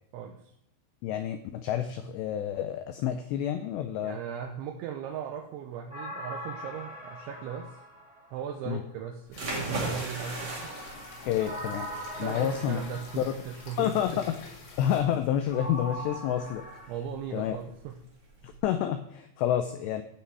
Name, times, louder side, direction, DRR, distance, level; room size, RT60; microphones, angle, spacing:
voice 1, 0.1-0.5 4.0-7.8 8.3-10.7 12.2-14.1 16.9-18.0, right 7 dB, 80° right, 2 dB, 3.0 m, -38 dB
voice 2, 1.0-4.2 8.7-8.8 11.2-11.9 12.2-12.8 13.2-13.3 13.8-14.3 14.8-16.6 17.3-17.6 18.4-20.0, left 10 dB, 85° left, 7 dB, 2.4 m, -29 dB
sound 1, 5.9-8.7 10.0-13.8 15.5-16.9, equal, ahead, 1.7 m, -41 dB
sound 2, 9.3-15.0, left 4 dB, 65° left, 4.0 m, -48 dB
sound 3, 9.3-18.6, right 2 dB, 45° right, 1.3 m, -40 dB
15.5 x 5.8 x 4.7 m, 0.75 s
omnidirectional pair, 5.7 m